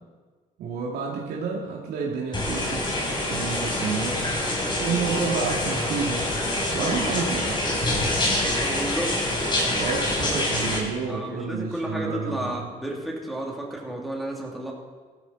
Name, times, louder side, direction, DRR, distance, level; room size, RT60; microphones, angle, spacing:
voice 1, 0.6-2.9 3.3-4.2 4.8-6.3 6.7-7.6 9.6-12.7, right 5 dB, 70° right, -3 dB, 2.5 m, -30 dB
sound 1, 2.3-10.8, left 1 dB, 25° left, 3.9 m, -26 dB
voice 2, 6.7-7.1 8.6-9.3 11.1-14.7, right 1 dB, ahead, -2 dB, 2.9 m, -32 dB
15.0 x 13.0 x 4.2 m, 1.4 s
cardioid pair, 110°, 17 cm